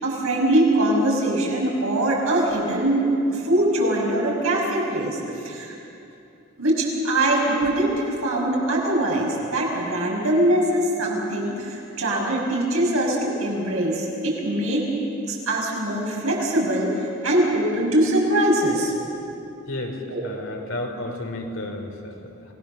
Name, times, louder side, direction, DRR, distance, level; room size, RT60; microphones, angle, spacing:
voice 1, 0.0-3.0 3.3-5.2 5.4-5.7 6.6-14.8 15.3-18.9 20.1-20.2, right 1 dB, 85° right, -2 dB, 5.8 m, -22 dB
voice 2, 19.7-22.5, left 1 dB, 65° left, 2 dB, 3.2 m, -32 dB
27.0 x 18.5 x 6.8 m, 2.8 s
head